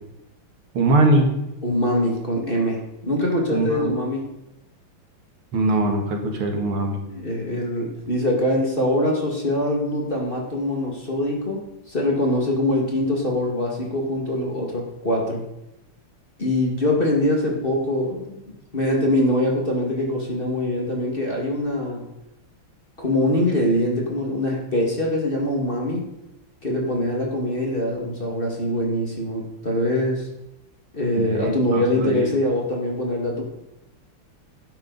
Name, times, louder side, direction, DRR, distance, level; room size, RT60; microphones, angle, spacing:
voice 1, 0.7-1.3 3.5-3.9 5.5-7.0 31.2-32.2, right 2 dB, 80° right, 3 dB, 2.6 m, -21 dB
voice 2, 1.6-4.3 7.1-15.5 16.4-18.4 18.7-22.1 23.0-26.1 26.6-30.3 30.9-33.4, left 1 dB, 25° left, -1 dB, 2.1 m, -23 dB
11.5 x 10.0 x 4.1 m, 0.89 s
omnidirectional pair, 2.4 m